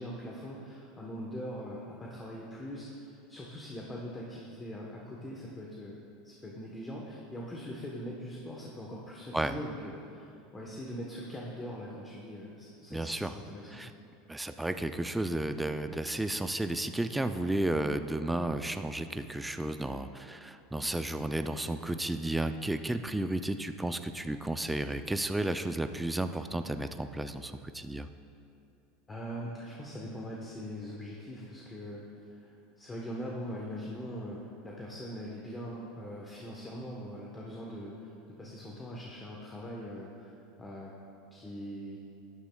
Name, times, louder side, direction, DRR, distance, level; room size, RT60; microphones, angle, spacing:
voice 1, 0.0-2.9 3.3-6.0 6.2-10.3 10.5-13.8 29.1-38.1 38.4-40.3 40.6-41.0 41.3-42.0, equal, 15° left, -3 dB, 1.0 m, -42 dB
voice 2, 12.9-13.4 13.7-13.9 14.3-28.1, right 1 dB, 5° right, 9 dB, 0.4 m, -33 dB
12.5 x 10.5 x 2.3 m, 2.7 s
supercardioid pair, 135°, 0 cm